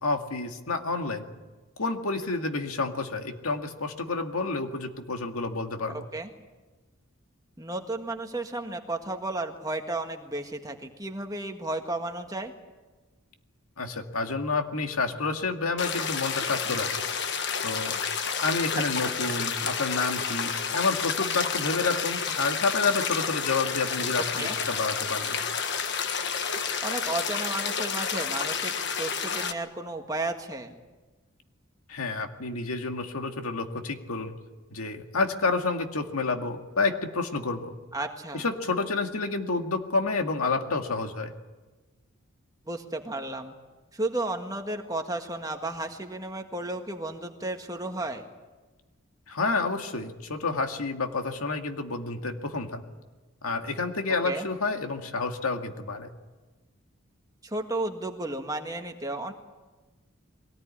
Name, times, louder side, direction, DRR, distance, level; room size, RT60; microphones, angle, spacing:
voice 1, 0.0-1.3 1.8-6.1 13.8-17.0 17.6-18.0 18.4-25.4 31.9-34.4 34.7-37.7 38.3-41.3 49.3-52.8 53.4-56.1, left 3 dB, 85° left, 5 dB, 2.2 m, -29 dB
voice 2, 5.9-6.3 7.6-12.5 19.0-19.2 24.2-24.6 26.8-30.7 37.9-38.4 42.7-43.5 43.9-48.3 54.2-54.4 57.4-59.3, right 2 dB, 15° right, 4 dB, 1.7 m, -33 dB
sound 1, 15.8-29.5, left 6 dB, 50° left, 1.4 m, -30 dB
23.0 x 18.5 x 10.0 m, 1.2 s
head